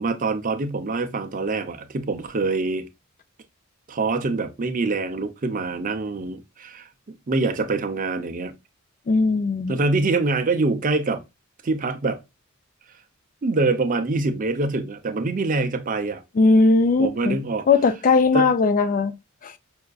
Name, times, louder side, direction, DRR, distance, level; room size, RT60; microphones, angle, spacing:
voice 1, 0.0-2.9 3.9-6.9 7.3-8.5 9.7-11.2 11.6-12.2 13.4-16.2 17.0-17.7 18.3-18.5, right 3 dB, 35° right, 0.5 m, -25 dB
voice 2, 9.1-9.8 16.3-17.4 17.7-19.1 19.4-19.5, left 3 dB, 35° left, 0.3 m, -18 dB
5.5 x 2.5 x 2.3 m
head